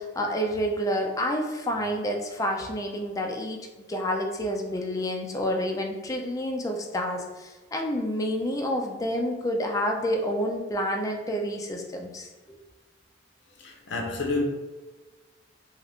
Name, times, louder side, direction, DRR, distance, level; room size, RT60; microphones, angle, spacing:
voice 1, 0.0-3.6 3.9-12.6, equal, 20° left, 0.3 m, -29 dB
voice 2, 13.6-14.4, left 3 dB, 65° left, 0.5 m, -29 dB
2.4 x 2.4 x 3.4 m
head